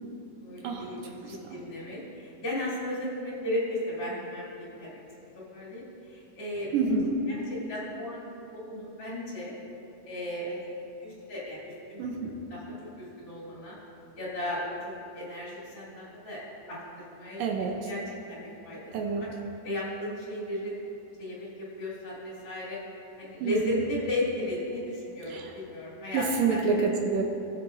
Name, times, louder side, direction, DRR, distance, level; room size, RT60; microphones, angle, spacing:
voice 1, 0.4-6.9 7.3-7.4 7.7-9.5 10.1-10.7 11.0-12.0 12.5-13.8 14.1-16.8 17.1-17.4 17.9-18.8 19.2-19.3 19.6-20.8 21.2-21.5 21.8-22.8 23.2-26.8, left 1 dB, 40° left, -8 dB, 3.3 m, -35 dB
voice 2, 6.7-7.1 12.0-12.3 17.4-17.8 18.9-19.3 23.4-23.8 25.3-25.5 26.1-27.2, right 4 dB, 75° right, 1 dB, 2.4 m, -27 dB
19.0 x 7.7 x 2.7 m, 2.9 s
omnidirectional pair, 4.2 m